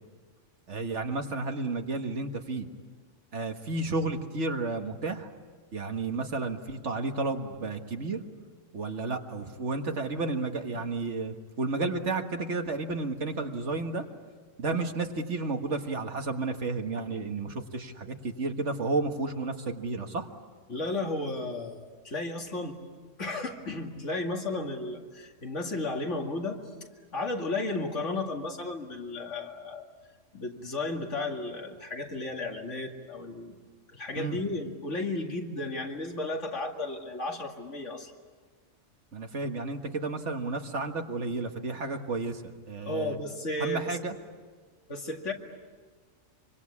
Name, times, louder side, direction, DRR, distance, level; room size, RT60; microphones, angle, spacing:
voice 1, 0.7-2.7 3.3-5.3 5.7-8.2 8.7-14.1 14.6-20.3 34.1-34.4 39.1-42.4 42.7-43.2 43.6-44.1, right 3 dB, 70° right, 5 dB, 1.9 m, -32 dB
voice 2, 20.7-22.8 23.2-26.6 27.1-29.9 30.3-33.5 33.9-38.1 42.9-44.0 44.9-45.3, left 2 dB, 70° left, 2 dB, 2.6 m, -33 dB
25.5 x 25.0 x 8.5 m, 1.5 s
omnidirectional pair, 1.3 m